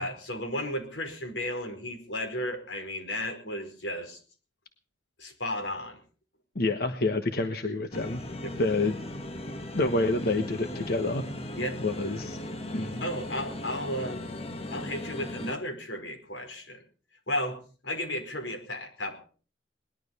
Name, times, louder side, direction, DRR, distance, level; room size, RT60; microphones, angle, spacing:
voice 1, 0.0-4.2 5.2-6.0 8.4-8.5 11.5-11.8 13.0-14.2 14.7-16.8 17.3-17.6 17.8-19.1, left 1 dB, 90° left, 5 dB, 5.0 m, -34 dB
voice 2, 6.5-8.2 8.6-9.0 9.7-11.2 11.8-12.4 12.7-13.0, left 2 dB, 55° left, 7 dB, 1.2 m, -28 dB
sound 1, 7.9-15.6, left 1 dB, 35° left, 1.4 m, -38 dB
20.0 x 12.0 x 5.4 m, 0.41 s
head